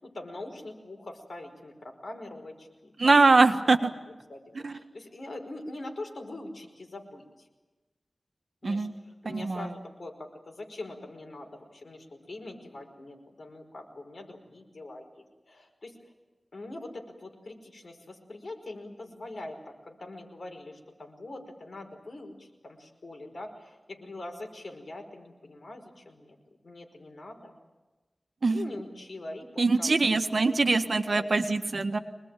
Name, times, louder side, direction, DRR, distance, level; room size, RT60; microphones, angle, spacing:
voice 1, 0.0-3.4 3.8-7.5 8.6-16.1 16.5-26.4 26.6-27.6 28.5-30.2 30.5-30.7 31.1-31.3, left 2 dB, 65° left, 2 dB, 5.1 m, -43 dB
voice 2, 3.0-3.9 4.6-4.7 8.6-8.9 9.2-9.7 28.4-28.6 29.6-32.0, right 3 dB, 60° right, 7 dB, 1.6 m, -23 dB
25.0 x 20.0 x 9.2 m, 1.2 s
wide cardioid pair, 75°, 0 cm